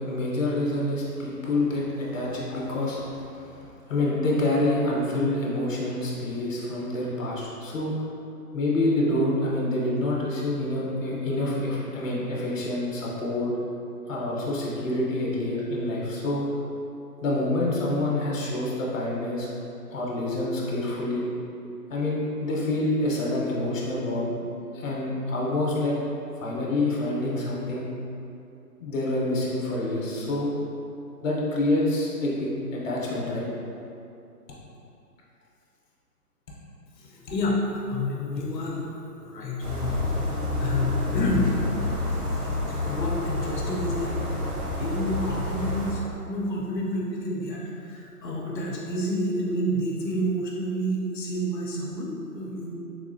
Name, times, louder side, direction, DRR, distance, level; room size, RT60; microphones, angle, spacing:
voice 1, 0.0-3.2 3.9-7.9 8.5-13.5 14.1-16.4 17.2-19.5 19.9-21.2 21.9-24.3 24.7-26.0 26.4-27.9 28.8-30.5 31.2-33.5, left 1 dB, 50° left, -5 dB, 0.9 m, -27 dB
voice 2, 37.0-37.6 37.9-40.1 40.6-41.5 42.1-42.2 42.8-44.2 44.8-52.8, left 1 dB, 90° left, -3 dB, 0.8 m, -29 dB
sound 1, 39.6-45.9, left 2 dB, 70° right, 1.1 m, -28 dB
3.5 x 2.9 x 2.6 m, 2.7 s
hypercardioid pair, 160°, 48 cm